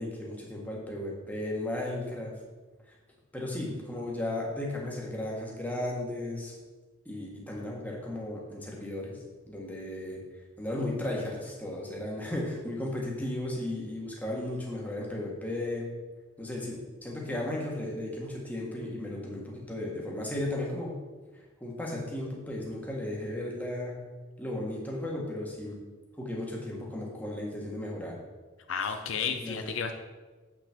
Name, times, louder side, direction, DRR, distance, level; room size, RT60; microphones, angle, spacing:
voice 1, 0.0-2.3 2.9-3.0 3.3-6.5 7.0-9.2 9.5-10.2 10.6-15.8 16.4-21.0 21.3-23.9 24.4-25.8 26.2-28.1 29.3-29.7, left 1 dB, 10° left, -3 dB, 1.6 m, -35 dB
voice 2, 28.7-29.9, left 6 dB, 70° left, 6 dB, 0.6 m, -32 dB
7.7 x 6.0 x 4.4 m, 1.3 s
head